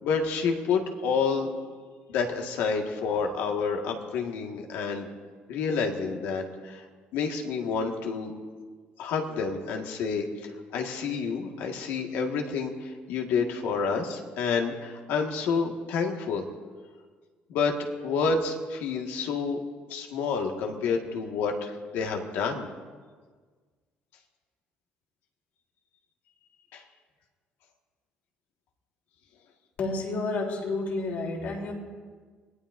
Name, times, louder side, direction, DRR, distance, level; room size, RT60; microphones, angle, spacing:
voice 1, 0.0-1.5 2.1-5.1 5.5-6.9 7.1-8.3 9.0-16.4 17.5-17.7 18.0-19.6 19.9-22.7 26.7-26.8, left 5 dB, 90° left, 2 dB, 1.7 m, -29 dB
voice 2, 29.8-31.7, left 3 dB, 55° left, -1 dB, 3.5 m, -30 dB
25.0 x 18.0 x 2.6 m, 1.5 s
cardioid pair, 135°, 4 cm